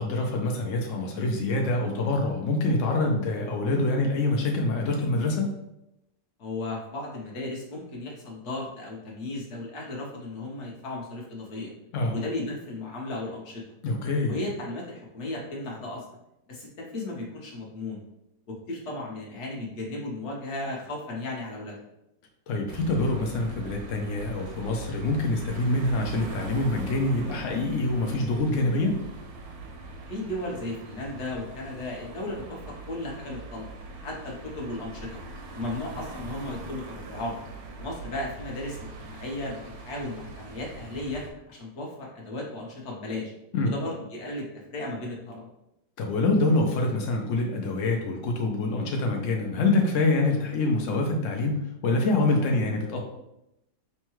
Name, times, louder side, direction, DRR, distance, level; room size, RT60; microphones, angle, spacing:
voice 1, 0.0-5.5 11.9-12.1 13.8-14.4 22.5-29.0 43.5-43.7 46.0-53.0, left 2 dB, 80° left, 1 dB, 0.7 m, -25 dB
voice 2, 6.4-11.7 12.1-13.6 14.3-16.0 16.5-18.0 18.7-21.8 30.1-33.7 34.0-35.2 35.5-37.4 37.8-41.2 41.5-43.3 43.6-44.4 44.7-45.5, left 2 dB, 50° left, -2 dB, 1.0 m, -35 dB
sound 1, 22.7-41.3, right 3 dB, 70° right, 1.0 m, -41 dB
5.4 x 2.2 x 3.0 m, 0.86 s
omnidirectional pair, 1.9 m